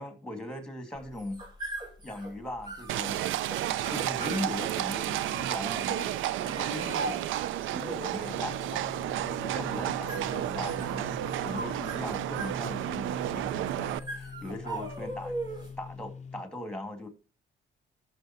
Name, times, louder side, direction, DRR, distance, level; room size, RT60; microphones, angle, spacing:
voice 1, 0.0-1.4 2.0-3.2 3.6-7.3 7.7-8.9 9.4-15.3 15.8-17.1, left 1 dB, 5° left, 2.3 m, -39 dB
sound 1, 1.0-15.9, right 1 dB, 20° right, 5.1 m, -41 dB
Livestock farm animals working animals, 2.9-14.0, right 13 dB, 85° right, 0.4 m, -32 dB
sound 2, 8.2-16.4, left 5 dB, 35° left, 0.5 m, -44 dB
14.0 x 6.5 x 3.0 m
cardioid pair, 90°, 20 cm